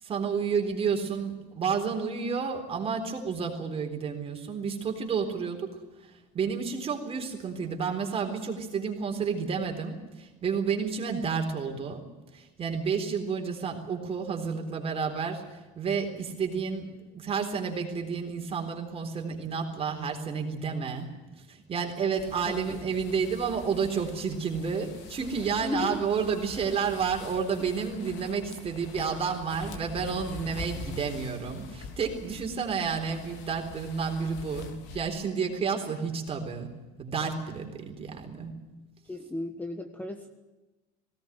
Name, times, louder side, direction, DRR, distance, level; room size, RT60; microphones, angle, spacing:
voice 1, 0.0-12.0 12.3-21.1 21.5-36.7 37.0-38.5, right 6 dB, 30° right, 4 dB, 3.9 m, -31 dB
sound 1, 22.2-35.1, left 4 dB, 75° left, 3.2 m, -44 dB
voice 2, 25.6-26.0 26.5-26.6 39.1-40.3, left 2 dB, 10° left, 6 dB, 1.3 m, -34 dB
19.5 x 17.5 x 9.3 m, 1.2 s
cardioid pair, 145°, 19 cm